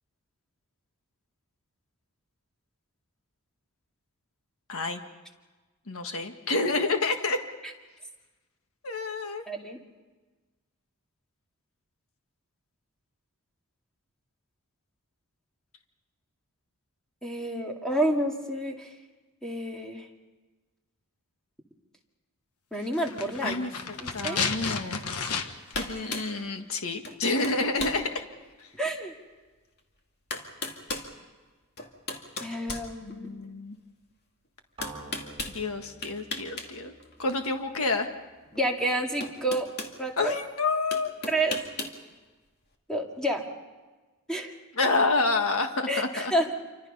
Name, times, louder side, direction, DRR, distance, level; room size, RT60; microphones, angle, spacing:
voice 1, 4.7-5.0 5.9-7.4 8.8-9.4 23.4-25.0 25.8-28.0 33.0-33.8 35.5-36.9 37.2-38.1 40.2-41.1 44.8-46.3, left 3 dB, 65° left, 6 dB, 1.7 m, -28 dB
voice 2, 9.5-9.8 17.2-18.9 19.4-20.1 22.7-23.7 24.0-24.4 28.8-29.1 32.4-33.3 38.5-39.7 40.0-40.3 41.3-41.6 42.9-43.5 44.3-44.5 45.9-46.5, right 1 dB, 5° left, 1 dB, 2.2 m, -29 dB
sound 1, 22.9-25.8 26.0-26.1, left 5 dB, 90° left, 1.4 m, -32 dB
sound 2, 25.3-25.5 25.7-26.3 27.0-27.2 27.4-28.0 28.6-28.7 29.8-29.9 30.3-31.1 31.8-33.4 34.8-35.6 36.0-36.7 37.0-37.1 38.6-38.7 39.2-40.0 40.9-42.0, left 2 dB, 50° left, 2.3 m, -35 dB
sound 3, 34.8-38.7, right 3 dB, 25° right, 4.2 m, -49 dB
27.5 x 25.0 x 5.5 m, 1.3 s
head